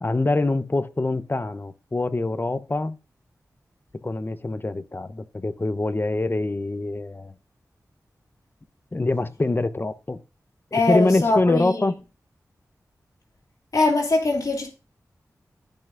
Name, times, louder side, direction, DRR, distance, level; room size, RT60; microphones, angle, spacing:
voice 1, 0.0-3.0 4.0-7.3 8.9-10.2 10.7-11.9, left 2 dB, 35° left, 0.9 m, -24 dB
voice 2, 10.7-11.9 13.7-14.7, left 3 dB, 70° left, 2.6 m, -22 dB
14.5 x 5.7 x 2.6 m
cardioid pair, 45°, 6 cm